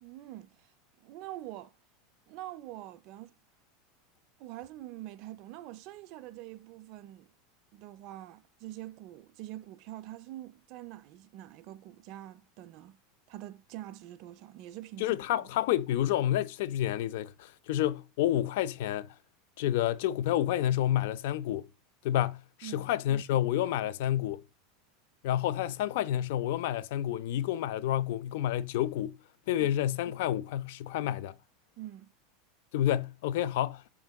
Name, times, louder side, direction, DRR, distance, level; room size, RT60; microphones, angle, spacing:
voice 1, 0.0-0.7 1.0-1.8 2.3-3.3 4.4-7.3 7.7-13.0 13.3-15.5 22.6-22.9 29.6-29.7 31.8-32.1, right 14 dB, 50° right, 0.3 m, -45 dB
voice 2, 15.0-19.1 19.6-21.7 22.0-24.4 25.2-29.2 29.5-31.3 32.7-33.8, left 12 dB, 70° left, 0.3 m, -29 dB
4.5 x 3.5 x 2.3 m
supercardioid pair, 140°, 0 cm